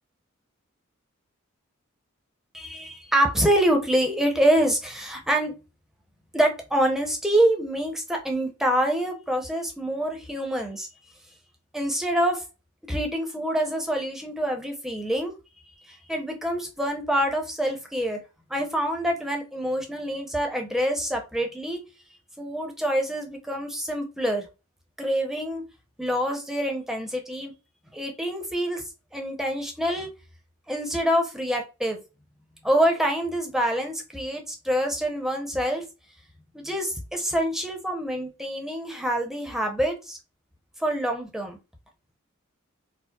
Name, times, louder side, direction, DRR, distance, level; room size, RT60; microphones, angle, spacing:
voice 1, 2.5-5.5 6.3-10.9 11.7-12.4 12.9-15.3 15.8-18.2 18.5-21.8 22.4-24.5 25.0-25.6 26.0-27.5 27.9-28.8 29.1-30.1 30.7-32.0 32.6-35.8 36.5-40.2 40.8-41.6, right 1 dB, ahead, 2 dB, 0.6 m, -26 dB
4.5 x 2.0 x 2.3 m, 0.29 s
head